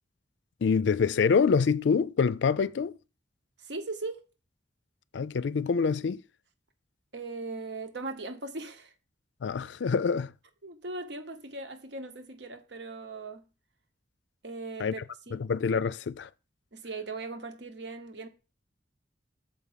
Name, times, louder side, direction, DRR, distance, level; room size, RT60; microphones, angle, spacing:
voice 1, 0.6-3.0 5.1-6.2 9.4-10.3 14.8-14.9 15.3-16.3, left 5 dB, 70° left, 0.4 m, -26 dB
voice 2, 3.6-4.2 7.1-8.9 10.6-13.5 14.4-15.0 15.3-15.5 16.7-18.3, right 3 dB, 65° right, 1.0 m, -39 dB
7.4 x 4.8 x 5.6 m
head